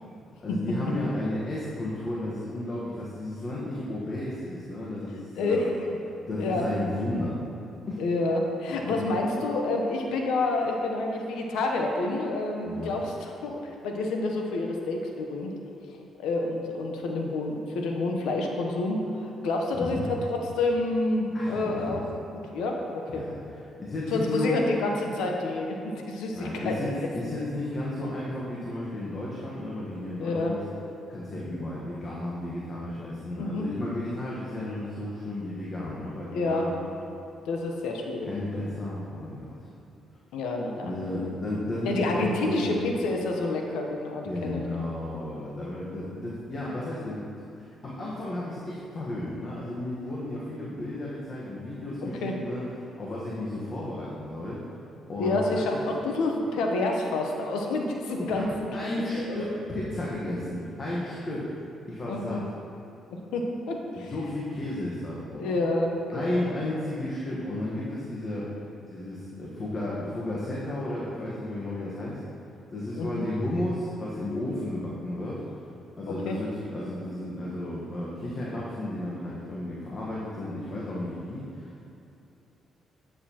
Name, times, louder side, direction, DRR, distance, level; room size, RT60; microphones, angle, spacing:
voice 1, 0.4-5.7 6.3-7.4 7.9-8.0 12.6-13.0 19.7-20.1 21.3-22.0 23.1-24.6 26.3-30.6 31.1-36.7 38.3-39.7 40.8-42.7 44.2-52.6 53.0-54.6 55.1-55.8 58.1-61.5 61.9-62.4 64.0-65.5 66.1-68.4 68.9-72.2 72.7-75.4 76.0-81.8, left 1 dB, 40° left, -6 dB, 1.2 m, -33 dB
voice 2, 5.4-5.7 6.4-6.6 8.0-15.5 16.2-22.0 22.3-23.2 24.1-26.9 30.2-30.5 33.4-33.6 36.3-36.7 37.5-38.3 38.6-38.7 40.3-40.9 41.8-44.6 52.0-52.3 55.2-59.5 62.1-62.4 63.3-64.1 65.4-66.5 72.9-73.2 76.3-76.4, left 2 dB, 90° left, 1 dB, 0.8 m, -28 dB
9.6 x 6.7 x 2.9 m, 2.7 s
cardioid pair, 90°, 0 cm